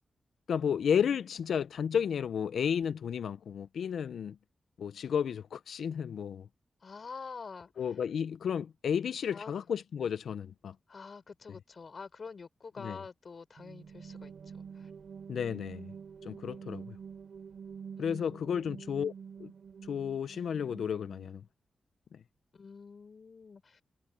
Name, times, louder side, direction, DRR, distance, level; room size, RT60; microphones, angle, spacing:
voice 1, 0.5-4.4 4.8-6.5 7.8-10.8 12.8-13.0 15.3-15.9 16.2-17.0 18.0-19.1 19.4-19.5 19.8-21.4 22.1-22.2, left 7 dB, 90° left, 0.4 m, -32 dB
voice 2, 6.8-7.9 9.3-9.5 10.9-14.9 18.0-18.7 22.5-23.8, left 5 dB, 45° left, 5.6 m, -47 dB
sound 1, 13.6-21.4, right 6 dB, 60° right, 2.9 m, -47 dB
wide cardioid pair, 160°, 0 cm